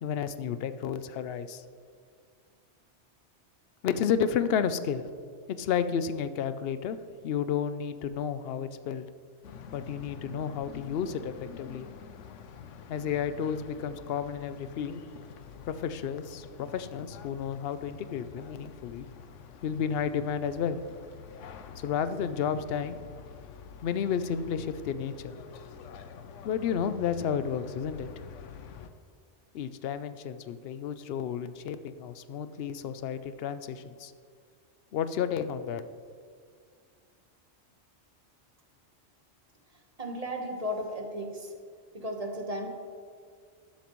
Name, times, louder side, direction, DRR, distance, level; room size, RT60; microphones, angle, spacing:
voice 1, 0.0-1.6 3.8-5.1 5.5-7.0 7.2-9.1 9.7-11.9 12.9-15.0 15.6-19.1 19.6-20.8 21.8-23.0 23.8-25.3 26.4-28.3 29.5-34.1 34.9-35.8, left 7 dB, 65° left, 12 dB, 0.7 m, -31 dB
sound 1, 9.4-28.9, left 7 dB, 85° left, 1.0 m, -47 dB
voice 2, 40.0-41.5 41.9-42.7, equal, 35° right, 3 dB, 1.2 m, -34 dB
12.5 x 11.5 x 3.1 m, 2.1 s
omnidirectional pair, 1.2 m